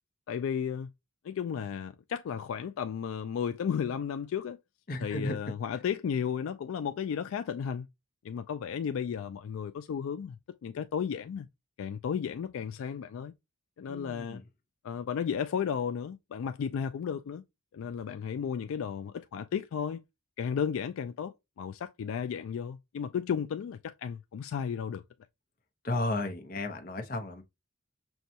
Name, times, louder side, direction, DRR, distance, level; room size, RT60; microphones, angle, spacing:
voice 1, 0.3-0.9 1.2-4.6 5.0-7.9 8.2-11.5 11.8-13.3 13.8-14.4 14.8-17.4 17.7-20.0 20.4-25.0, left 7 dB, 75° left, 0.3 m, -34 dB
voice 2, 4.9-5.3 13.9-14.4 25.8-27.4, left 2 dB, 45° left, 0.7 m, -33 dB
6.2 x 2.3 x 2.7 m
head